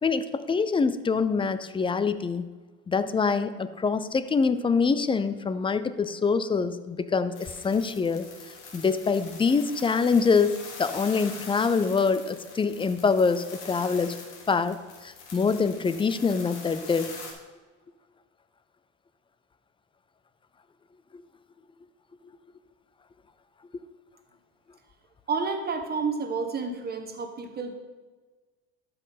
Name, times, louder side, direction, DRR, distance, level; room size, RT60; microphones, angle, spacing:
voice 1, 0.0-2.4 2.9-8.3 8.7-14.2 14.5-17.2, left 5 dB, 15° left, 13 dB, 0.5 m, -25 dB
sound 1, 7.3-17.3, left 4 dB, 90° left, 1.7 m, -44 dB
voice 2, 25.3-27.8, right 4 dB, 30° right, 5 dB, 1.3 m, -30 dB
12.0 x 5.5 x 4.1 m, 1.3 s
supercardioid pair, 90°, 33 cm